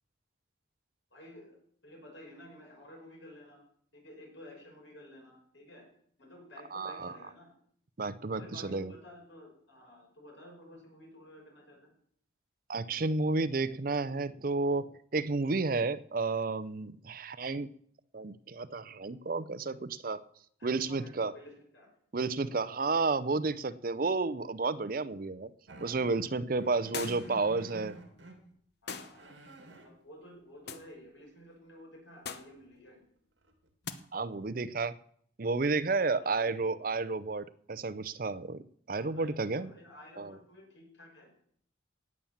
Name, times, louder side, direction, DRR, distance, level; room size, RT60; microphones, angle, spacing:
voice 1, 1.1-1.6 1.8-3.6 3.9-5.9 6.2-7.5 8.3-11.9 20.6-21.9 22.2-22.8 26.7-26.9 27.6-27.8 28.1-28.2 28.8-29.3 29.8-33.0 35.8-36.5 38.9-41.3, left 1 dB, 70° left, 0 dB, 6.0 m, -52 dB
voice 2, 6.7-7.1 8.0-8.9 12.7-14.9 15.1-17.7 18.1-20.2 20.6-21.3 22.1-25.5 25.8-27.9 34.1-34.9 35.4-38.6 38.9-39.7 40.2-40.3, right 3 dB, 45° right, 15 dB, 0.5 m, -31 dB
sound 1, 25.7-28.4 28.9-29.9 32.7-32.8 33.4-33.7, right 2 dB, 65° right, 2.5 m, -50 dB
sound 2, 26.9-27.4 28.9-29.2 30.7-30.9 32.2-32.6 33.8-34.0, left 6 dB, 55° left, 0.9 m, -40 dB
18.0 x 7.3 x 7.2 m, 0.65 s
head